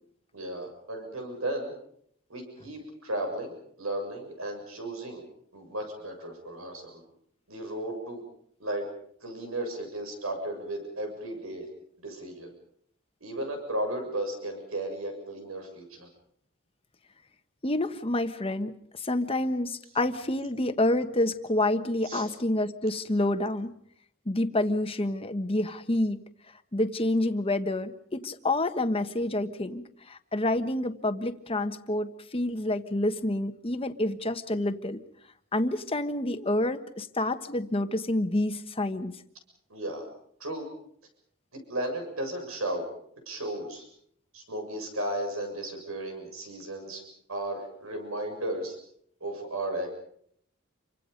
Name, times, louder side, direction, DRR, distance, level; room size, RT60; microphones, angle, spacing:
voice 1, 0.3-1.7 2.3-3.5 3.8-5.2 5.5-7.0 7.5-8.2 8.6-8.9 9.2-11.7 12.0-12.5 13.2-16.1 22.1-22.3 39.7-40.0 40.4-40.7 41.5-42.9 43.3-43.8 44.3-47.0 47.3-48.8 49.2-49.9, right 1 dB, 90° right, 4 dB, 7.1 m, -34 dB
voice 2, 17.6-23.7 24.2-26.2 26.7-35.0 35.5-39.1, left 1 dB, 30° left, 8 dB, 1.4 m, -28 dB
28.5 x 25.0 x 5.3 m, 0.67 s
head